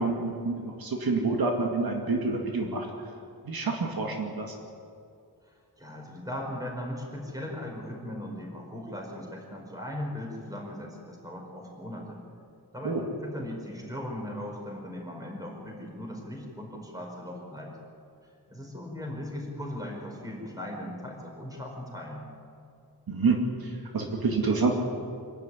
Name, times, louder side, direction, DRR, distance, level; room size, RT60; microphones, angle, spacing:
voice 1, 0.0-2.9 3.4-4.5 12.8-13.0 23.1-24.7, right 3 dB, 65° right, 1 dB, 2.3 m, -28 dB
voice 2, 5.5-12.2 12.7-17.7 18.5-22.3, left 1 dB, 10° right, -1 dB, 4.9 m, -38 dB
26.0 x 12.5 x 9.9 m, 2.4 s
wide cardioid pair, 170°, 38 cm